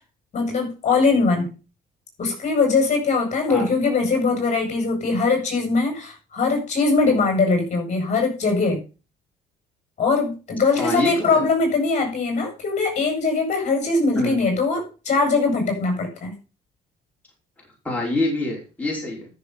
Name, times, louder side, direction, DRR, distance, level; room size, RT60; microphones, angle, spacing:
voice 1, 0.3-1.5 2.2-8.8 10.0-16.4, left 4 dB, 45° left, 3 dB, 7.1 m, -21 dB
voice 2, 10.8-11.5 14.1-14.3 17.8-19.3, left 2 dB, 10° left, -2 dB, 5.3 m, -25 dB
13.5 x 7.1 x 5.6 m, 0.33 s
cardioid pair, 110°, 17 cm